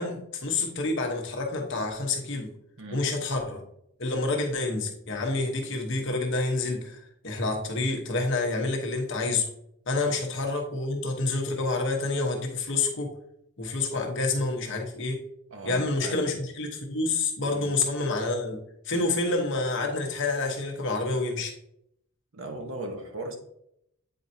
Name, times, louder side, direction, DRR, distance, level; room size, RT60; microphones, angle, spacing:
voice 1, 0.0-2.5 2.9-3.6 4.0-9.5 9.9-13.1 13.6-15.2 15.6-18.6 18.8-21.5, left 3 dB, 55° left, 1.0 m, -28 dB
voice 2, 2.8-3.1 10.1-10.3 13.9-14.0 15.5-16.4 17.5-17.7 22.3-23.4, right 1 dB, 60° right, 1.0 m, -38 dB
8.7 x 4.3 x 2.7 m
head